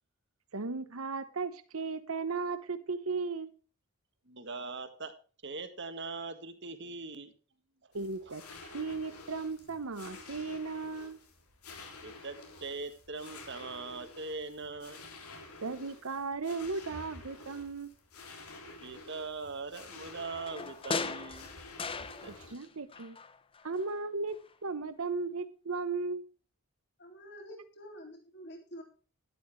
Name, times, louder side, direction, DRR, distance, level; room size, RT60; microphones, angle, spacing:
voice 1, 0.5-3.5 7.9-11.2 15.6-17.9 22.3-23.2 23.6-24.4 24.6-26.3, right 4 dB, 75° right, 12 dB, 0.9 m, -36 dB
voice 2, 4.2-5.1 5.4-7.4 7.8-7.9 8.2-8.3 12.0-15.1 18.8-21.5 22.0-22.5, right 3 dB, 55° right, 9 dB, 1.6 m, -41 dB
sound 1, 7.9-22.5, left 3 dB, 90° left, 3.4 m, -50 dB
sound 2, 20.2-22.7 22.9-24.0 24.3-24.4, left 4 dB, 25° left, 0.7 m, -38 dB
voice 3, 27.0-28.8, equal, 50° left, 3 dB, 3.5 m, -48 dB
11.5 x 11.5 x 3.2 m, 0.38 s
head